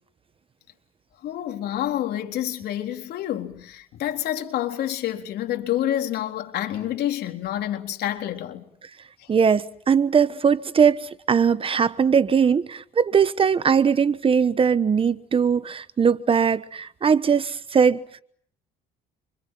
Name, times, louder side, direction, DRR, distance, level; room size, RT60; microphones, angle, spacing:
voice 1, 1.2-8.7 9.2-9.3, left 12 dB, 70° left, 3.9 m, -28 dB
voice 2, 9.3-18.0, right 6 dB, 35° right, 1.1 m, -20 dB
28.5 x 26.0 x 7.6 m
cardioid pair, 110°, 17 cm